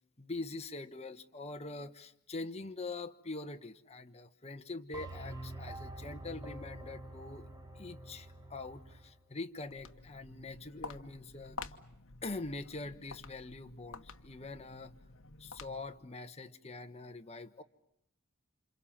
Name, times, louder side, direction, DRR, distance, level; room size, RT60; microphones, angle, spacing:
voice 1, 0.2-7.5 7.8-11.6 12.2-14.9 15.4-17.6, left 3 dB, 30° left, 7 dB, 1.2 m, -44 dB
sound 1, 4.9-9.1, right 1 dB, 20° right, 2.4 m, -46 dB
Walk footsteps, 9.5-16.1, left 4 dB, 60° left, 1.3 m, -50 dB
29.0 x 27.0 x 7.4 m, 0.79 s
head